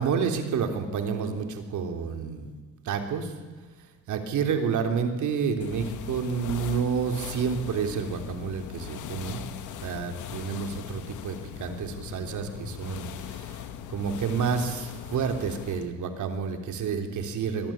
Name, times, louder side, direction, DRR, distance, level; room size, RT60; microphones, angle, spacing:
voice 1, 0.0-2.5 2.9-3.3 4.1-9.4 9.8-13.6 13.9-17.7, right 6 dB, 75° right, 5 dB, 3.4 m, -29 dB
sound 1, 5.6-15.9, left 9 dB, 80° left, 2.0 m, -39 dB
24.0 x 18.5 x 8.8 m, 1.4 s
cardioid pair, 90°, 30 cm